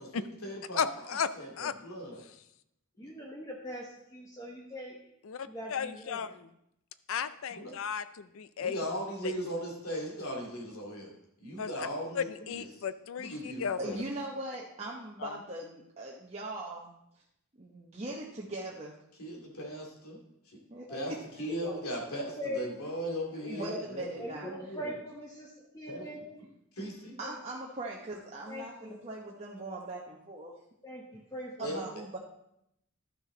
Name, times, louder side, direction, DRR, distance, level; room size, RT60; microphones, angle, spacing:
voice 1, 0.0-1.5 1.8-2.2 3.0-3.1 7.5-7.7 8.6-11.1 11.4-12.3 12.6-12.7 13.2-14.0 19.2-20.2 20.5-20.6 20.9-21.1 21.4-24.1 24.4-24.9 25.9-26.1 26.8-27.2 31.6-31.8, equal, 80° left, -1 dB, 2.4 m, -38 dB
voice 2, 0.8-1.3 1.6-1.7 2.2-2.4 5.2-6.5 7.1-8.8 9.2-9.3 11.6-11.9 12.1-13.8 15.2-15.3, left 7 dB, 65° left, 14 dB, 0.4 m, -35 dB
voice 3, 3.0-5.0 5.5-6.2 20.9-21.0 21.5-21.8 22.2-22.6 23.4-23.8 24.2-26.3 27.2-27.3 28.5-29.0 30.8-31.9, equal, 15° left, -1 dB, 1.0 m, -41 dB
voice 4, 13.8-17.0 17.6-18.9 20.7-21.5 23.3-24.5 27.2-30.5 31.1-31.2 31.6-32.2, right 2 dB, 30° right, -3 dB, 0.8 m, -40 dB
12.0 x 6.1 x 3.8 m, 0.78 s
head